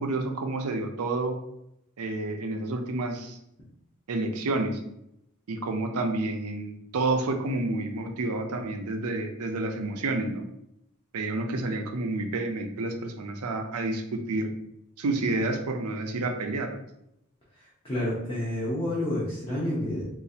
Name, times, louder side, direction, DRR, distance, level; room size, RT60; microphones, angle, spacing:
voice 1, 0.0-1.4 2.0-3.4 4.1-4.8 5.5-10.4 11.1-14.5 15.0-16.8, right 2 dB, 80° right, 4 dB, 0.5 m, -29 dB
voice 2, 17.5-20.0, left 1 dB, 25° left, -8 dB, 0.8 m, -30 dB
3.9 x 2.4 x 2.7 m, 0.80 s
head